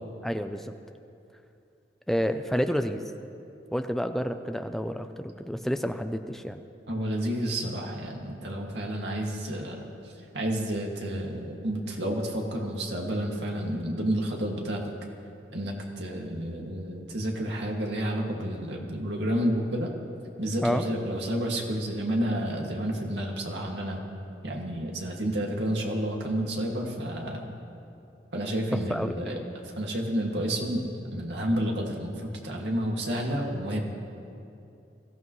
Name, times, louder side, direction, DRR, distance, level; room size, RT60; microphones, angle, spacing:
voice 1, 0.2-0.7 2.1-3.0 3.7-6.6 20.6-20.8 28.9-29.4 33.7-33.8, equal, ahead, 7 dB, 0.5 m, -29 dB
voice 2, 6.9-9.8 10.3-14.8 15.5-19.9 20.4-24.0 24.4-27.5 28.3-29.4 29.6-33.8, equal, 80° right, -1 dB, 2.2 m, -30 dB
21.5 x 15.0 x 3.2 m, 2.6 s
head